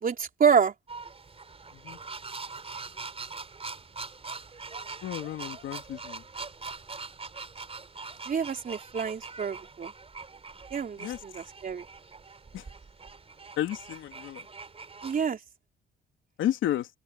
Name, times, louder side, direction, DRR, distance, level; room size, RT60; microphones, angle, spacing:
voice 1, 0.0-0.7 8.3-9.9 10.7-11.8 15.0-15.4, right 7 dB, 45° right, 3.4 m, -27 dB
sound 1, 0.9-15.3, right 4 dB, 30° right, 4.3 m, -43 dB
voice 2, 5.0-6.2 11.0-11.2 12.5-12.6 13.6-14.5 16.4-16.9, left 12 dB, 80° left, 3.0 m, -32 dB
cardioid pair, 90°, 20 cm